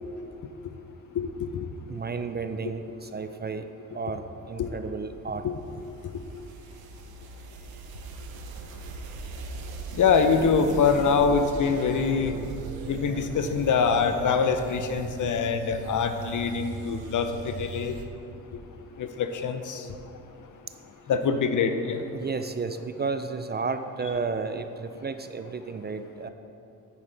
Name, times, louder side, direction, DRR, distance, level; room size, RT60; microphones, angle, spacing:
voice 1, 1.1-1.7 4.6-4.7 5.4-5.5 9.9-12.4 12.9-18.0 19.0-19.9 21.1-22.0, left 5 dB, 50° left, 8 dB, 0.8 m, -24 dB
voice 2, 1.9-3.7 3.9-5.4 22.1-26.3, right 4 dB, 25° right, 9 dB, 0.5 m, -32 dB
sound 1, 5.2-18.1, right 5 dB, 70° right, 0.9 m, -39 dB
9.6 x 8.7 x 3.4 m, 2.8 s
hypercardioid pair, 50°, 38 cm